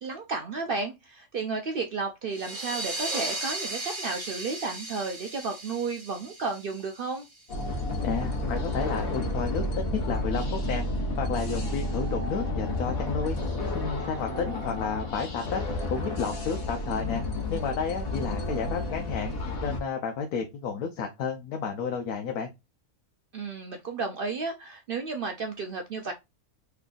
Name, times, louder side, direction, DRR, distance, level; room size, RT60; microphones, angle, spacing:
voice 1, 0.0-7.2 23.3-26.1, right 4 dB, 70° right, 0.5 m, -33 dB
sound 1, 2.3-7.6, right 2 dB, 35° right, 1.3 m, -36 dB
sound 2, 7.5-19.8, left 1 dB, 45° left, 1.1 m, -31 dB
voice 2, 8.0-10.8 11.2-13.4 13.7-17.2 17.5-19.3 19.6-22.5, left 6 dB, 80° left, 1.1 m, -31 dB
3.7 x 3.3 x 2.4 m
omnidirectional pair, 1.5 m